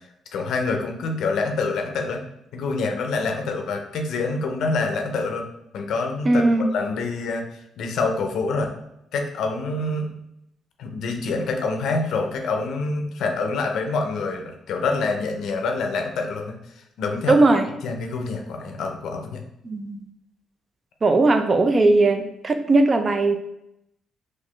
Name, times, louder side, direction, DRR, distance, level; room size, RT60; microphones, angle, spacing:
voice 1, 0.3-2.2 2.5-5.5 5.7-6.4 6.7-8.7 9.1-10.1 10.8-17.4 17.8-19.4, left 3 dB, 75° left, 4 dB, 0.5 m, -26 dB
voice 2, 6.3-6.7 17.3-17.6 19.6-20.0 21.0-23.4, right 2 dB, 35° right, 7 dB, 0.4 m, -18 dB
4.0 x 2.5 x 3.0 m, 0.82 s
cardioid pair, 90°, 0 cm